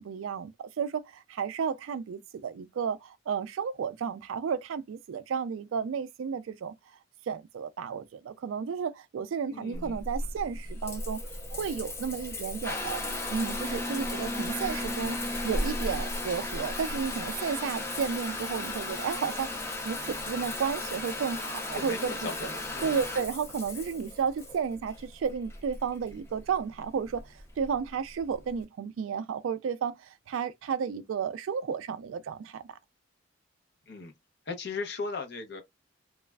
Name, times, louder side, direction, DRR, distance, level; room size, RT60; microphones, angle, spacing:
voice 1, 0.0-6.7 7.3-11.2 11.5-13.0 13.3-15.2 15.4-19.5 19.8-22.1 22.8-27.2 27.6-32.8, right 6 dB, 80° right, 0.3 m, -32 dB
voice 2, 9.5-10.0 21.7-23.0 33.9-34.1 34.5-35.6, left 4 dB, 55° left, 0.7 m, -37 dB
Water tap faucet / Bathtub (filling or washing) / Trickle dribble, 9.7-28.6, left 2 dB, 15° left, 0.5 m, -35 dB
3.0 x 2.4 x 2.2 m
head